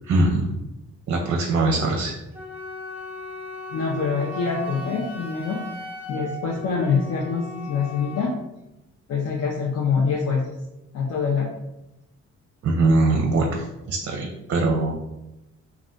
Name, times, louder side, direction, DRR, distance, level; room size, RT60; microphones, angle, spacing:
voice 1, 0.1-0.6 1.1-2.1 12.6-15.0, right 2 dB, 50° right, 1 dB, 0.5 m, -22 dB
Wind instrument woodwind instrument, 2.3-8.4, left 1 dB, 5° right, 0.5 m, -37 dB
voice 2, 3.7-5.6 6.1-8.3 9.1-10.4 10.9-11.5, left 5 dB, 55° left, -2 dB, 0.6 m, -25 dB
2.4 x 2.3 x 3.6 m, 0.93 s
cardioid pair, 90°, 30 cm